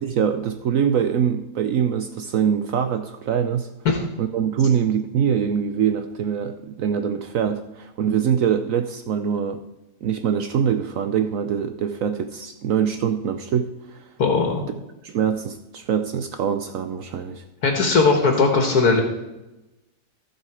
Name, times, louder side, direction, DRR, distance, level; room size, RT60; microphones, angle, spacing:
voice 1, 0.0-3.7 4.2-9.6 10.0-14.0 15.0-17.4, right 8 dB, 65° right, 8 dB, 0.9 m, -23 dB
voice 2, 14.2-14.6 17.6-19.0, left 4 dB, 75° left, 3 dB, 1.8 m, -18 dB
15.5 x 5.6 x 4.8 m, 0.98 s
omnidirectional pair, 1.7 m